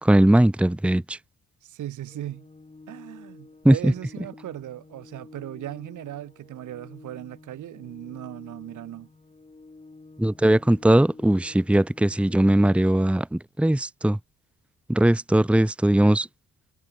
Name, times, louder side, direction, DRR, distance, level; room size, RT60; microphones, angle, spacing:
voice 1, 0.0-1.2 3.6-3.9 10.2-14.2 14.9-16.3, right 1 dB, 5° right, 1.1 m, -19 dB
voice 2, 1.6-2.5 2.9-9.1, right 13 dB, 80° right, 4.1 m, -38 dB
Organ, 2.0-13.0, left 3 dB, 20° left, 6.1 m, -49 dB
cardioid pair, 90°, 30 cm